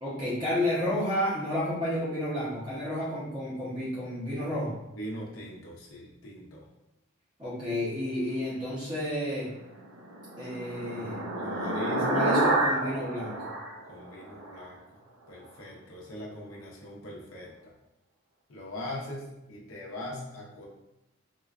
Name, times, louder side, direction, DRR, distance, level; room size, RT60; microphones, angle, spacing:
voice 1, 0.0-4.8 7.4-9.5 10.4-11.2 12.0-13.5, left 1 dB, 20° right, -9 dB, 0.6 m, -31 dB
voice 2, 5.0-6.7 11.4-12.1 13.9-14.8 15.3-17.7 18.5-20.7, left 1 dB, 85° left, -4 dB, 0.7 m, -41 dB
sound 1, 9.8-14.6, right 1 dB, 70° right, 0.5 m, -29 dB
3.7 x 2.2 x 2.4 m, 0.92 s
head